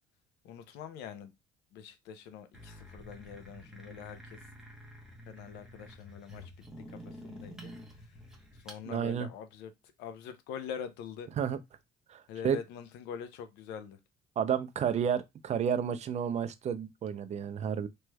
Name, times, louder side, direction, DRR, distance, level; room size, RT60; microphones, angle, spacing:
voice 1, 0.4-1.3 1.7-4.5 5.3-6.5 6.9-7.7 8.0-8.1 8.5-9.7 10.0-11.3 12.3-14.0, left 8 dB, 90° left, 0.6 m, -44 dB
sound 1, 2.5-8.8, equal, 5° right, 1.0 m, -49 dB
voice 2, 8.9-9.3 11.4-11.6 12.1-12.6 14.4-17.9, right 8 dB, 40° right, 0.4 m, -31 dB
3.1 x 3.1 x 2.2 m
cardioid pair, 110°, 17 cm